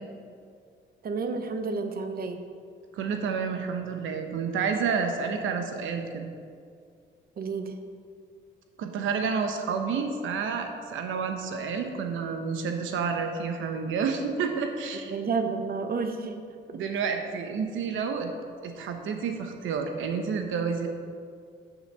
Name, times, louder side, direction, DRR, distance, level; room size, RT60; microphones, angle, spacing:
voice 1, 1.0-2.4 7.4-7.8 15.1-16.8, right 4 dB, 50° right, 7 dB, 0.9 m, -31 dB
voice 2, 2.9-6.3 8.8-15.1 16.7-18.3 18.6-20.9, right 5 dB, 80° right, 5 dB, 1.1 m, -30 dB
7.1 x 5.9 x 6.7 m, 2.2 s
cardioid pair, 90°, 20 cm